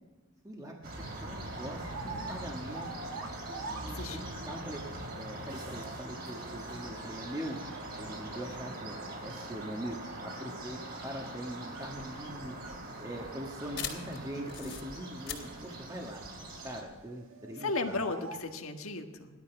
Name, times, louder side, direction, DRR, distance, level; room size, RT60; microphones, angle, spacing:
sound 1, 0.8-16.8, right 1 dB, 45° right, 3.0 m, -42 dB
voice 1, 1.1-2.9 3.5-4.8 5.2-7.6 8.0-9.0 9.2-12.5 13.0-16.2 16.6-18.0, right 1 dB, 15° right, -1 dB, 1.5 m, -42 dB
sound 2, 1.2-4.7 6.3-8.7 9.4-11.3 11.6-14.0 14.3-14.9 15.2-15.3 15.6-16.2 16.6-18.4, right 3 dB, 80° right, 1.9 m, -48 dB
voice 2, 3.9-4.5 17.6-19.3, left 3 dB, 85° left, 4 dB, 1.7 m, -35 dB
sound 3, 12.0-17.0, left 8 dB, 60° left, 3.2 m, -43 dB
16.5 x 12.5 x 6.0 m, 1.3 s
head